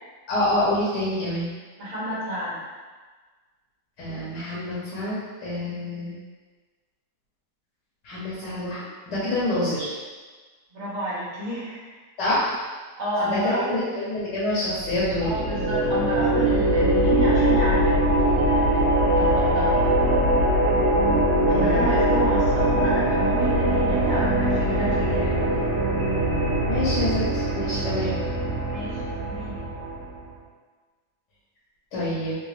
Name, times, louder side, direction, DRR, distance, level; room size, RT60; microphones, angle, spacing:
voice 1, 0.3-1.5 4.0-6.2 8.0-9.9 12.2-12.5 13.2-15.3 21.5-22.0 26.7-28.2 31.9-32.4, left 1 dB, 85° left, -9 dB, 1.5 m, -27 dB
voice 2, 1.8-2.6 10.7-11.9 13.0-13.8 15.2-18.8 19.1-19.8 21.5-25.6 28.7-29.6, equal, 45° right, -8 dB, 1.4 m, -30 dB
sound 1, 14.7-30.2, right 1 dB, 65° right, 1.4 m, -22 dB
3.4 x 2.7 x 3.0 m, 1.4 s
omnidirectional pair, 1.8 m